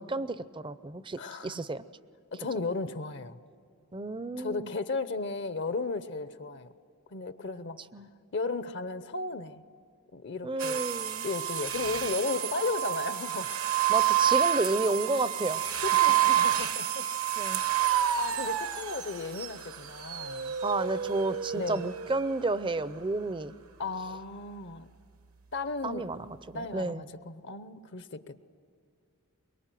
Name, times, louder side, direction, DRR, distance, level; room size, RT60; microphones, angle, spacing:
voice 1, 0.0-1.8 3.9-4.7 7.9-8.1 10.4-11.3 13.9-15.8 17.4-17.6 20.6-23.5 25.8-27.0, right 2 dB, 20° right, 14 dB, 0.6 m, -31 dB
voice 2, 1.2-1.6 2.3-3.4 4.4-6.7 7.1-7.8 8.3-9.6 10.1-10.9 11.2-13.5 15.8-17.1 17.8-20.6 21.5-21.8 23.8-24.9 25.5-26.1 26.5-28.4, left 3 dB, 50° left, 12 dB, 0.8 m, -35 dB
sound 1, 10.6-22.3, right 11 dB, 70° right, 1.1 m, -29 dB
24.0 x 22.5 x 9.2 m, 2.3 s
head